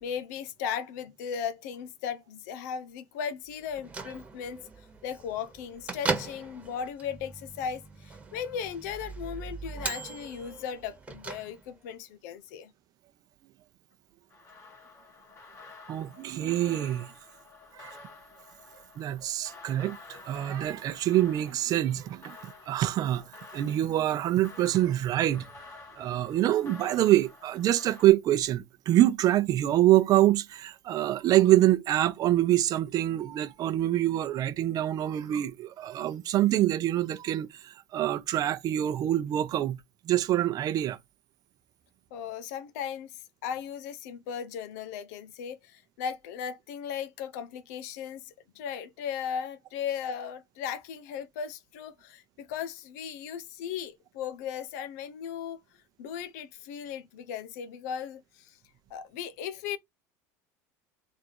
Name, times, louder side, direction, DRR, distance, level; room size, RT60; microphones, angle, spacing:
voice 1, 0.0-4.6 5.0-12.7 42.1-55.6 56.0-58.6 58.9-59.8, left 8 dB, 80° left, 0.7 m, -37 dB
Bell / Microwave oven, 3.6-11.9, right 3 dB, 15° right, 1.2 m, -38 dB
sound 1, 14.3-28.1, left 4 dB, 30° left, 1.2 m, -50 dB
voice 2, 15.9-17.1 17.7-18.0 19.0-25.5 26.0-39.8 40.0-41.0, right 13 dB, 45° right, 0.7 m, -25 dB
3.4 x 2.6 x 4.5 m
supercardioid pair, 120°, 9 cm